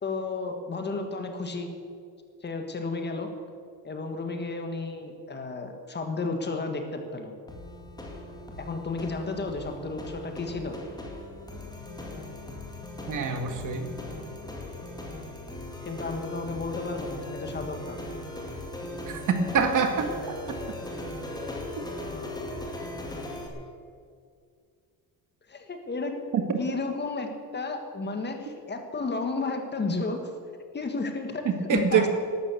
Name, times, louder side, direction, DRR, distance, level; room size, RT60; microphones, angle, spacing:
voice 1, 0.0-1.7 2.4-3.3 3.8-7.3 8.6-10.8 15.9-18.0 25.5-26.2 26.6-30.2 30.7-32.1, left 3 dB, 25° left, 5 dB, 1.6 m, -32 dB
sound 1, 7.5-23.5, left 1 dB, 10° left, 2.2 m, -38 dB
voice 2, 13.1-13.9 19.1-20.1 26.3-26.4 31.5-32.1, right 6 dB, 50° right, 6 dB, 1.7 m, -25 dB
12.5 x 11.5 x 8.4 m, 2.2 s
cardioid pair, 150°, 39 cm